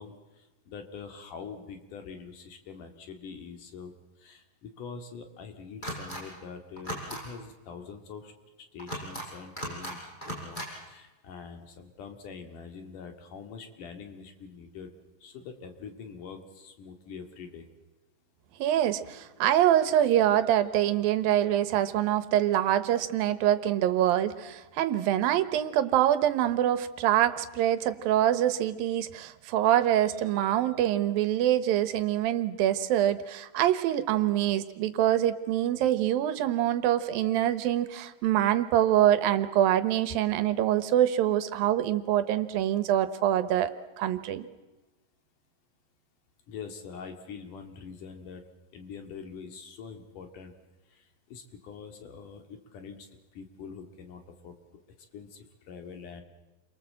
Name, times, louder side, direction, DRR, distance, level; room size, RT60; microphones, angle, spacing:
voice 1, 0.0-3.9 4.2-8.3 8.7-14.9 15.2-17.7 46.5-48.4 48.7-50.5 50.9-53.1 53.3-54.8 55.1-56.2, left 6 dB, 65° left, 5 dB, 3.6 m, -44 dB
sound 1, 5.8-6.2 6.8-7.2 8.8-9.3 9.6-9.9 10.2-10.7, equal, 10° left, 6.1 m, -36 dB
voice 2, 18.6-43.7 44.0-44.5, right 12 dB, 85° right, 13 dB, 2.9 m, -25 dB
29.0 x 23.5 x 7.7 m, 1.1 s
omnidirectional pair, 4.0 m